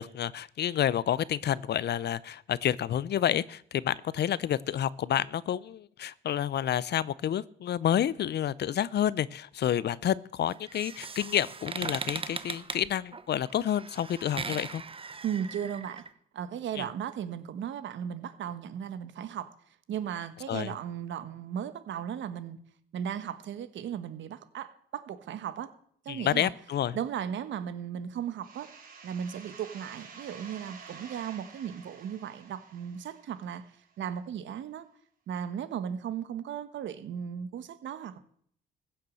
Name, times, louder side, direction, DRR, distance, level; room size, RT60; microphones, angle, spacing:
voice 1, 0.0-14.8 16.8-16.9 20.5-20.7 26.1-27.0, left 10 dB, 55° left, 20 dB, 0.6 m, -29 dB
sound 1, 10.5-16.1, right 5 dB, 25° right, 0.9 m, -39 dB
voice 2, 15.2-16.0 16.3-19.5 19.9-22.6 22.9-25.7 26.0-26.5 26.9-28.7 29.0-33.7 34.0-34.8 35.3-38.2, right 9 dB, 70° right, 12 dB, 1.3 m, -36 dB
sound 2, 28.4-33.9, right 5 dB, 50° right, 4.5 m, -50 dB
15.5 x 6.7 x 7.7 m, 0.62 s
cardioid pair, 90°, 20 cm